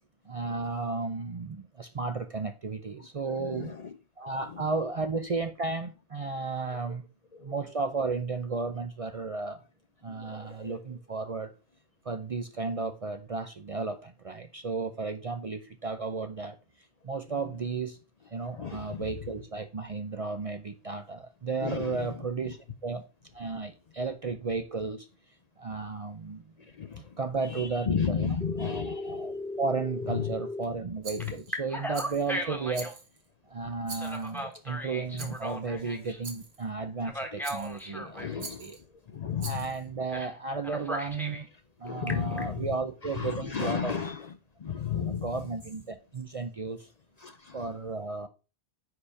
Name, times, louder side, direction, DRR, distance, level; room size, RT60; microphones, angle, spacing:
voice 1, 0.3-3.7 4.2-7.0 7.4-9.6 10.0-11.5 12.0-16.6 17.0-18.0 18.3-23.0 23.3-25.1 25.6-26.4 27.0-32.9 33.5-38.8 39.4-41.5 41.8-43.9 45.0-46.9 47.5-48.3, right 4 dB, 45° right, 0.5 m, -34 dB
voice 2, 3.3-3.9 7.4-7.5 10.2-10.8 18.5-19.1 21.6-22.1 26.8-27.0 27.5-29.2 30.1-30.2 31.2-31.3 37.9-38.6 39.1-39.6 41.8-42.7 43.1-44.3 44.6-45.3 47.2-47.6, left 7 dB, 50° left, 0.5 m, -33 dB
Telephone, 28.4-30.7 31.2-33.0 33.9-36.2 37.0-38.3 40.1-40.3 40.6-41.4 41.9-42.4, left 1 dB, ahead, 1.2 m, -37 dB
Rattle, 31.0-31.5 31.9-32.3 32.7-33.3 33.8-34.4 35.2-35.5 36.2-36.6 37.4-37.9 38.4-38.8 39.4-39.8, right 4 dB, 75° right, 1.5 m, -43 dB
4.9 x 4.7 x 5.7 m
omnidirectional pair, 1.1 m